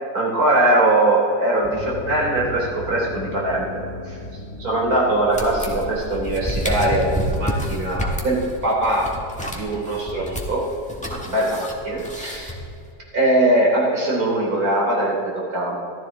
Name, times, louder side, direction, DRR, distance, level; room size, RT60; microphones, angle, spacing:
voice 1, 0.1-3.7 4.1-4.2 4.6-9.1 9.5-10.7 11.1-12.5 13.1-15.7, right 1 dB, 65° right, -3 dB, 3.6 m, -21 dB
sound 1, 1.6-7.6, left 1 dB, 80° left, 2.4 m, -37 dB
sound 2, 5.3-12.9, equal, 5° left, 1.3 m, -29 dB
14.5 x 12.5 x 3.8 m, 2.5 s
omnidirectional pair, 1.7 m